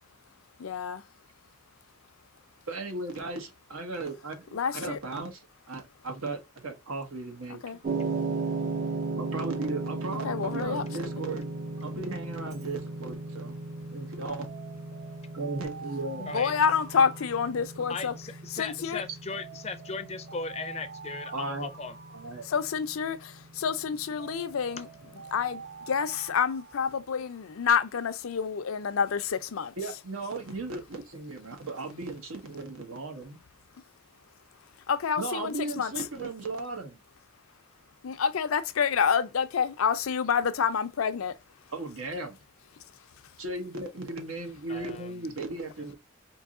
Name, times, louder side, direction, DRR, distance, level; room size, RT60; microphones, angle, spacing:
voice 1, 0.6-1.0 4.5-5.0 7.6-7.8 10.2-10.8 16.2-18.1 18.5-19.0 22.4-24.9 25.3-29.7 34.9-35.9 38.0-41.3, left 6 dB, 85° left, 0.5 m, -28 dB
voice 2, 2.7-5.4 5.7-7.6 9.1-13.6 13.9-14.5 15.3-16.3 21.3-21.7 22.1-22.5 29.8-33.4 35.2-37.0 41.7-42.4 43.4-46.0, right 3 dB, 85° right, 1.1 m, -36 dB
sound 1, 7.8-26.1, right 3 dB, 35° right, 0.4 m, -37 dB
Alarm, 12.3-12.7 14.4-18.2 19.3-23.1 24.2-27.4, right 5 dB, 55° right, 0.9 m, -47 dB
voice 3, 17.9-21.9 44.7-45.3, left 4 dB, 30° left, 0.4 m, -37 dB
4.6 x 2.7 x 2.4 m
head